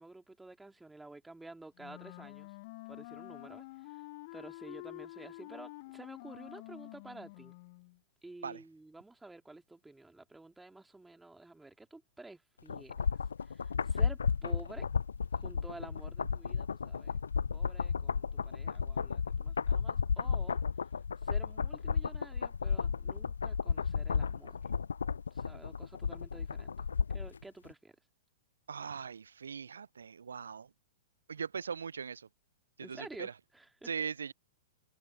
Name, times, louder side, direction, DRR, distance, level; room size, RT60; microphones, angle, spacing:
voice 1, 0.0-2.5 2.9-4.0 4.3-7.6 8.2-12.9 13.4-14.9 15.3-17.2 17.5-20.6 21.2-24.6 25.3-26.8 27.1-27.9 32.8-33.9, right 2 dB, 5° right, 2.8 m, -51 dB
Wind instrument woodwind instrument, 1.8-8.0, left 23 dB, 45° left, 1.3 m, -48 dB
sound 1, 12.7-27.4 27.7-27.8, left 6 dB, 75° left, 0.5 m, -33 dB
voice 2, 28.7-30.7 31.3-32.3 32.8-33.3 33.8-34.3, right 6 dB, 75° right, 0.6 m, -40 dB
figure-of-eight pair, 105°, 0 cm